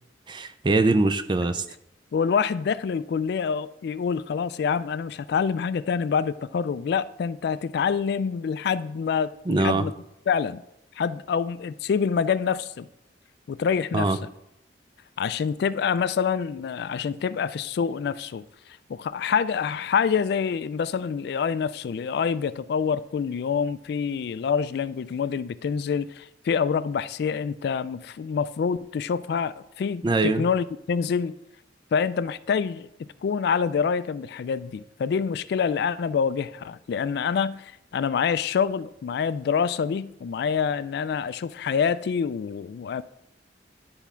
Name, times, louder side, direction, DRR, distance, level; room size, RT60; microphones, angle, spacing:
voice 1, 0.3-1.6 9.5-9.8 13.9-14.2 30.0-30.4, right 2 dB, 25° right, 0.4 m, -22 dB
voice 2, 2.1-9.9 10.3-10.6 11.0-12.9 13.5-14.2 15.2-18.4 18.9-31.3 31.9-32.9 33.2-43.0, left 6 dB, 60° left, 0.3 m, -26 dB
10.0 x 3.5 x 5.6 m
head